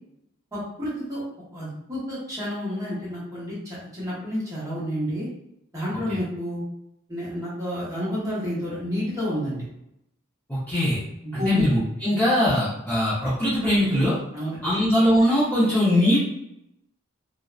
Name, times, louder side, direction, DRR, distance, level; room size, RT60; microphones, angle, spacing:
voice 1, 0.5-1.2 1.5-5.3 5.7-6.6 7.1-9.6 11.2-11.6 12.1-12.2 14.3-14.8, equal, 15° right, -9 dB, 0.9 m, -30 dB
voice 2, 10.5-11.0 11.3-14.2 14.6-16.2, equal, 10° left, -11 dB, 0.7 m, -21 dB
2.6 x 2.1 x 2.4 m, 0.80 s
head